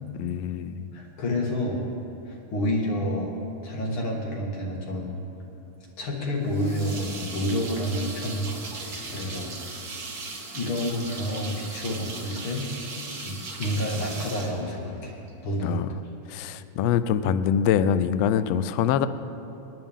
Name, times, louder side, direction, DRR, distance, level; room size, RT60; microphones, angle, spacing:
voice 1, 0.2-0.9 15.6-15.9 16.3-19.1, left 9 dB, 85° left, 12 dB, 1.4 m, -24 dB
voice 2, 0.9-1.8 2.3-3.3 3.6-5.1 6.0-9.9 10.5-12.7 13.2-15.1 15.4-15.8, left 1 dB, 45° left, -1 dB, 2.4 m, -29 dB
sound 1, 6.5-15.3, right 3 dB, 40° right, 1.4 m, -38 dB
27.5 x 9.9 x 3.6 m, 2.9 s
omnidirectional pair, 3.5 m